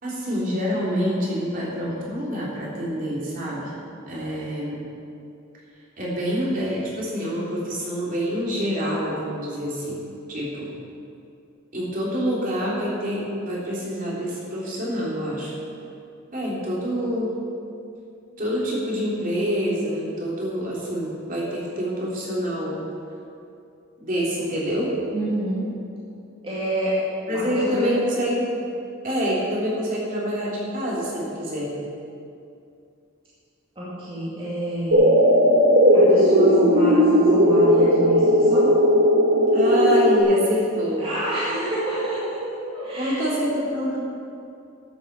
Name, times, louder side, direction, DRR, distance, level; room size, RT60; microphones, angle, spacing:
voice 1, 0.0-3.7 4.1-4.8 6.0-10.0 10.3-10.7 11.7-15.5 16.3-17.3 18.4-22.8 24.0-24.9 27.3-28.7 29.0-31.7 39.5-41.0 43.0-44.0, equal, 45° right, -6 dB, 3.4 m, -26 dB
voice 2, 25.1-25.8 26.4-28.0 33.8-35.1 35.9-38.8 41.0-43.3, right 1 dB, 30° right, -10 dB, 2.4 m, -28 dB
sound 1, 34.9-40.2, equal, 80° right, 1.8 m, -16 dB
11.5 x 7.7 x 7.4 m, 2.5 s
head